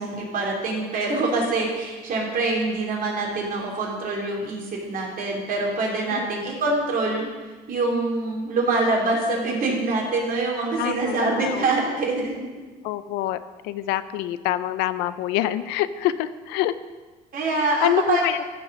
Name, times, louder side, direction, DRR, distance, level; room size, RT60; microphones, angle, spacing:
voice 1, 0.0-7.3 7.7-12.5 17.3-18.2, right 3 dB, 55° right, -2 dB, 3.1 m, -25 dB
voice 2, 10.8-11.6 12.8-13.4 13.6-16.7 17.8-18.4, left 13 dB, 90° left, 14 dB, 0.5 m, -26 dB
14.5 x 4.9 x 5.4 m, 1.3 s
cardioid pair, 90°, 17 cm